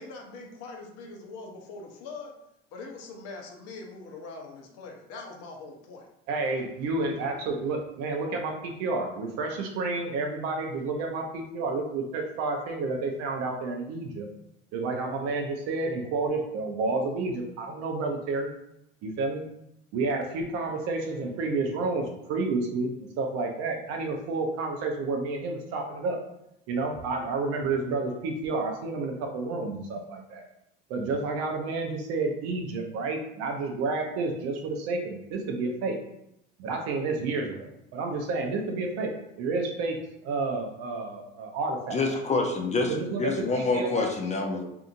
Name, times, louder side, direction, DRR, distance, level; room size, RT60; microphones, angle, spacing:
voice 1, 0.0-2.3 2.7-6.1, left 3 dB, 55° left, 1 dB, 0.7 m, -42 dB
voice 2, 6.3-14.3 14.7-18.5 19.0-19.4 19.9-26.2 26.7-30.4 30.9-36.0 36.6-39.1 39.4-42.2 42.9-43.3 43.6-44.1, right 3 dB, 55° right, 2 dB, 0.7 m, -30 dB
voice 3, 41.9-44.6, left 3 dB, 25° left, 3 dB, 0.5 m, -27 dB
2.7 x 2.5 x 2.5 m, 0.80 s
hypercardioid pair, 70°, 30 cm